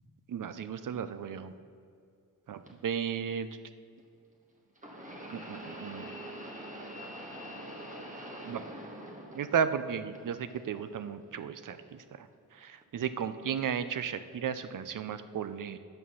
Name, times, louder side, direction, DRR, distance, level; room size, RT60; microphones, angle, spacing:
voice 1, 0.3-1.5 2.5-3.5 5.3-6.2 8.4-8.6 9.3-12.3 12.6-15.8, right 7 dB, 55° right, 11 dB, 0.6 m, -34 dB
sound 1, 2.7-2.8 4.8-9.8 10.1-10.9 11.7-11.8 12.8-12.9, right 1 dB, 20° right, 1.5 m, -44 dB
8.9 x 6.2 x 5.5 m, 2.4 s
cardioid pair, 50°, 38 cm